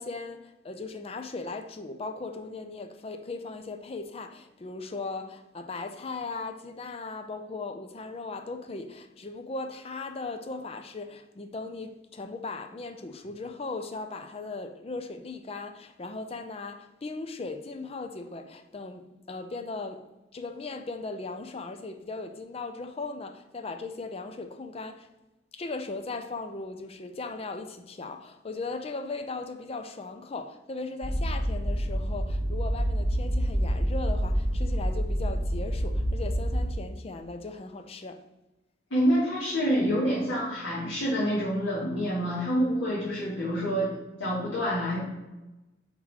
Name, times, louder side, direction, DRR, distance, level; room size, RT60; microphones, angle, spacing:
voice 1, 0.0-20.0 20.3-25.1 25.5-38.2, left 3 dB, 30° left, 0.4 m, -38 dB
sound 1, 31.0-36.7, equal, ahead, 1.2 m, -27 dB
voice 2, 38.9-43.9 44.2-45.1, equal, 90° left, 1.6 m, -27 dB
5.6 x 3.6 x 4.6 m
head